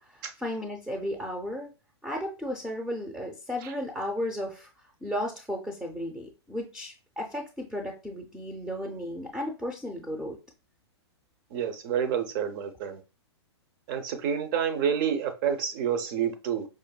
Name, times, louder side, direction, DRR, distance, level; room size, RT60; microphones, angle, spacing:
voice 1, 0.1-1.7 2.0-4.7 5.0-10.4, equal, 5° right, 0.6 m, -34 dB
voice 2, 11.5-13.0 13.9-16.7, right 8 dB, 50° right, 0.7 m, -28 dB
4.9 x 2.5 x 2.2 m
hypercardioid pair, 120°, 14 cm